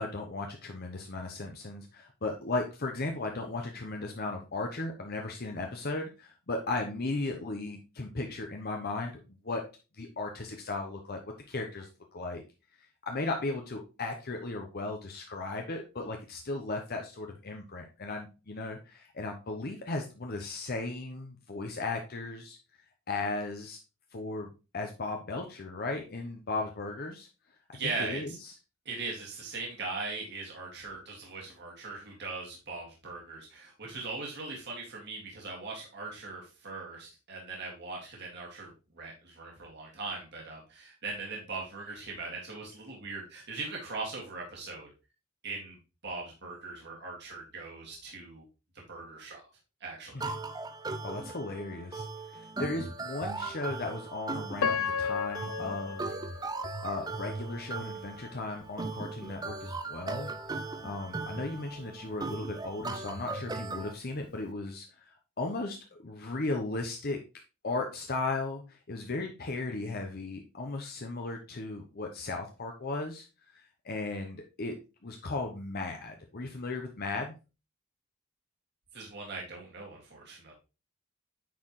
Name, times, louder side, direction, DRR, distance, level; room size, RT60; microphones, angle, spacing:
voice 1, 0.0-9.6 10.0-11.2 11.5-12.4 13.0-22.6 23.1-23.8 24.1-27.3 27.8-28.3 50.1-50.3 51.0-56.1 56.8-60.3 60.6-67.2 67.6-73.3 73.5-74.7 75.0-77.4, left 2 dB, 45° left, 3 dB, 0.9 m, -36 dB
voice 2, 27.7-28.4 28.9-44.9 45.4-45.8 46.0-48.4 48.7-49.4 49.8-50.3 78.9-80.5, right 3 dB, 55° right, -2 dB, 2.2 m, -40 dB
sound 1, 50.2-63.9, right 3 dB, 20° right, 0.5 m, -38 dB
Piano, 54.6-57.6 58.2-58.3 58.9-59.2, left 6 dB, 90° left, 0.5 m, -34 dB
9.2 x 4.5 x 3.1 m, 0.30 s
head